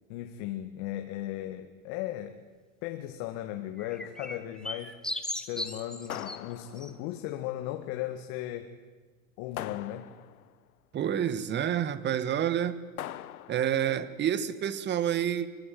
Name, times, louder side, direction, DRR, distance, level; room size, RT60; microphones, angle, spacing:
voice 1, 0.1-2.4 2.8-4.9 5.4-8.7 9.4-10.1, left 13 dB, 50° left, 6 dB, 2.0 m, -36 dB
sound 1, 3.8-6.4 6.8-6.9, left 1 dB, ahead, 1.6 m, -37 dB
sound 2, 6.1-7.2 9.6-10.5 13.0-13.8, left 13 dB, 90° left, 1.2 m, -41 dB
voice 2, 10.9-12.8 13.5-15.5, right 10 dB, 25° right, 15 dB, 1.5 m, -28 dB
24.0 x 23.5 x 9.3 m, 1.4 s
supercardioid pair, 130°, 42 cm